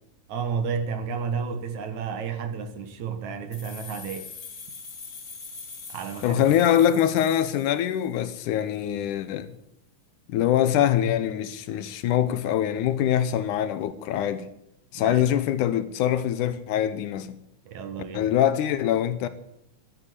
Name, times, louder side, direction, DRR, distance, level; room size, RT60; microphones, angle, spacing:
voice 1, 0.3-4.3 5.9-6.4 14.9-15.3 17.7-18.3, right 6 dB, 65° right, 2.5 m, -31 dB
sound 1, 3.5-8.3, left 5 dB, 45° left, 3.0 m, -43 dB
voice 2, 6.2-9.5 10.3-14.5 14.9-17.3 18.1-19.3, left 10 dB, 75° left, 2.2 m, -23 dB
12.0 x 9.9 x 9.5 m
omnidirectional pair, 3.8 m